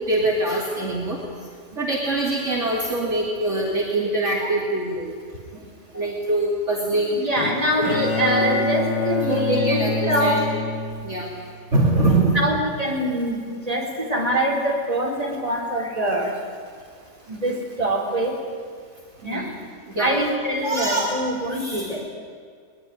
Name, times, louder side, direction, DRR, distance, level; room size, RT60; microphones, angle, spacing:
voice 1, 0.1-1.2 1.8-5.1 5.9-7.2 7.9-8.0 8.4-8.6 9.3-10.4 11.0-11.3 11.7-12.4 19.2-19.5 19.9-20.1 20.6-21.1 21.5-21.9, right 2 dB, 45° right, -3 dB, 3.0 m, -23 dB
voice 2, 7.1-9.8 10.0-10.3 12.3-16.4 17.3-18.4 19.2-19.5 20.0-22.0, right 1 dB, 20° right, -1 dB, 4.1 m, -24 dB
Bowed string instrument, 7.4-11.6, left 3 dB, 75° left, 2.4 m, -26 dB
21.5 x 20.5 x 9.5 m, 2.1 s
omnidirectional pair, 1.7 m